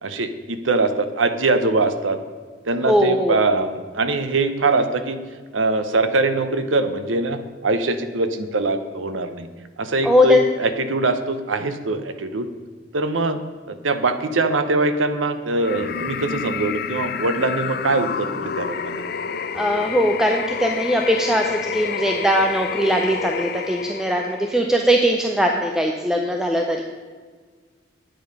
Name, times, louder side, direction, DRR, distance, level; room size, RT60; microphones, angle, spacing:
voice 1, 0.0-2.2 2.7-5.2 5.5-9.5 9.8-12.5 12.9-13.4 13.7-19.0, right 3 dB, 85° right, 9 dB, 0.8 m, -22 dB
voice 2, 2.9-3.4 10.0-10.4 19.5-26.8, equal, 5° right, 2 dB, 0.5 m, -20 dB
sound 1, 15.6-24.6, left 6 dB, 50° left, 0.4 m, -29 dB
8.9 x 7.8 x 5.2 m, 1.5 s
head